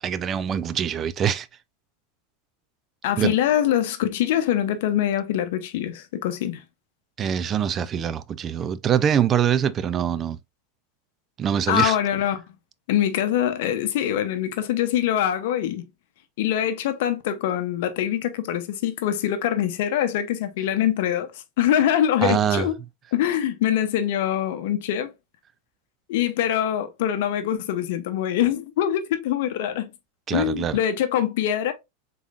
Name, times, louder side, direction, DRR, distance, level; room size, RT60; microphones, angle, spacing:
voice 1, 0.0-1.5 3.2-3.3 7.2-10.4 11.4-12.0 22.2-22.7 30.3-30.8, right 8 dB, 25° right, 0.3 m, -24 dB
voice 2, 3.0-6.6 11.7-12.4 12.9-15.9 16.4-21.3 21.6-22.7 23.1-25.1 26.1-29.9 30.3-31.7, left 11 dB, 70° left, 0.7 m, -24 dB
3.8 x 3.5 x 2.4 m
supercardioid pair, 140°, 0 cm